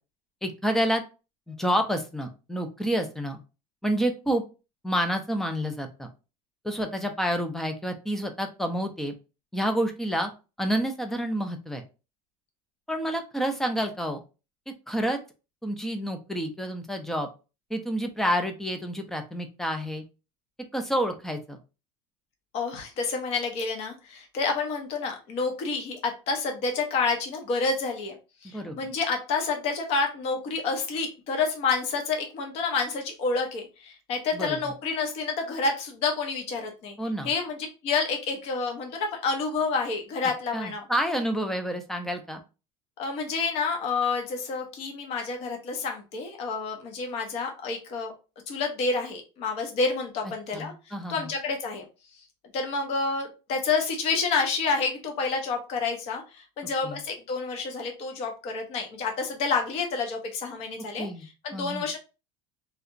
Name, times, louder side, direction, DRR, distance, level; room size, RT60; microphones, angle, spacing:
voice 1, 0.4-1.0 1.5-3.4 3.8-4.4 4.8-6.1 6.6-9.1 9.5-10.3 10.6-11.8 12.9-14.2 14.9-15.2 15.6-17.3 17.7-20.0 20.7-21.6 28.5-28.8 34.3-34.6 37.0-37.3 40.5-42.4 50.5-51.3 56.8-57.0 61.0-61.3 61.5-61.9, equal, 5° left, 6 dB, 0.4 m, -29 dB
voice 2, 22.5-28.1 28.4-37.0 37.2-37.6 37.8-40.8 43.0-48.1 48.5-50.7 51.1-51.8 52.5-61.1 61.4-62.0, left 4 dB, 45° left, 3 dB, 0.8 m, -29 dB
3.2 x 2.8 x 2.5 m, 0.30 s
cardioid pair, 170°, 15 cm